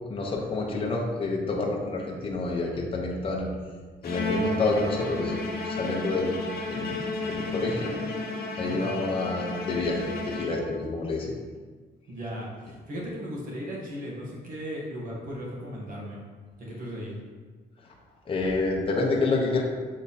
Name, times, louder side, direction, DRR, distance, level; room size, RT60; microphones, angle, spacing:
voice 1, 0.1-3.5 4.0-6.3 6.7-7.0 7.3-7.9 8.6-11.4 18.3-19.6, left 3 dB, 30° left, -1 dB, 0.9 m, -28 dB
Bowed string instrument, 4.0-11.0, left 2 dB, 60° left, 0.9 m, -32 dB
voice 2, 12.1-16.2 16.6-17.1, equal, 50° right, -4 dB, 1.7 m, -36 dB
6.5 x 3.5 x 4.2 m, 1.4 s
cardioid pair, 150°, 18 cm